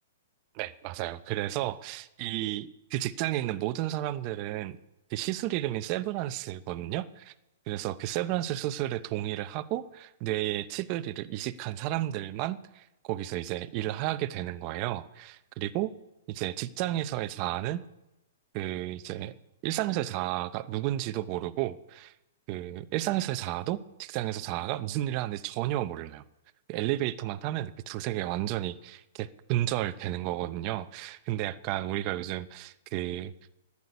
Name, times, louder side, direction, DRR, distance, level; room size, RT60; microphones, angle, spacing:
voice 1, 0.5-4.8 5.1-7.3 7.7-15.9 16.3-17.8 18.5-19.3 19.6-22.1 22.5-26.2 26.7-33.3, right 14 dB, 40° right, 12 dB, 0.7 m, -32 dB
11.0 x 8.4 x 9.6 m, 0.93 s
hypercardioid pair, 140°, 0 cm